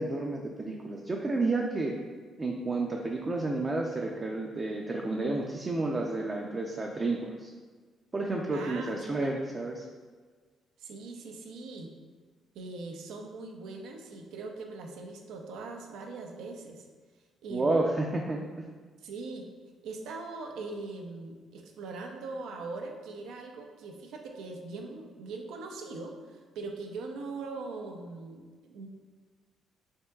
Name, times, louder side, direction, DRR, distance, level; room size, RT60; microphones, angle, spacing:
voice 1, 0.0-2.0 2.4-7.5 8.1-9.8 17.5-18.4, right 2 dB, 30° right, 0 dB, 0.4 m, -31 dB
voice 2, 8.5-9.3 10.8-11.9 12.5-16.9 17.4-17.9 19.0-19.5 19.8-28.9, right 3 dB, 85° right, 3 dB, 0.5 m, -41 dB
5.4 x 3.6 x 2.3 m, 1.4 s
cardioid pair, 90°, 0 cm